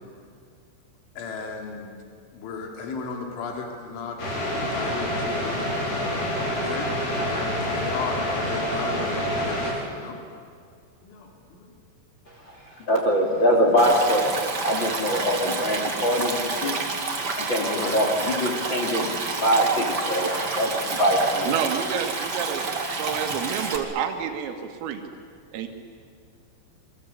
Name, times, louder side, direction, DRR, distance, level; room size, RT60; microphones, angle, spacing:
voice 1, 1.2-2.0 2.3-4.2 4.5-6.9 7.2-10.2 11.0-11.7 17.7-18.1, left 4 dB, 70° left, 2 dB, 5.3 m, -35 dB
sound 1, 4.2-9.7, equal, 50° left, 6.7 m, -27 dB
voice 2, 12.9-14.3 14.6-16.8 17.4-21.5, equal, 35° left, 0 dB, 2.3 m, -23 dB
Stream, 13.8-23.8, right 3 dB, 55° right, 1.1 m, -29 dB
voice 3, 21.5-22.6 23.0-25.0 25.5-25.7, right 8 dB, 85° right, 5 dB, 4.5 m, -29 dB
27.5 x 24.0 x 8.4 m, 2.2 s
omnidirectional pair, 5.9 m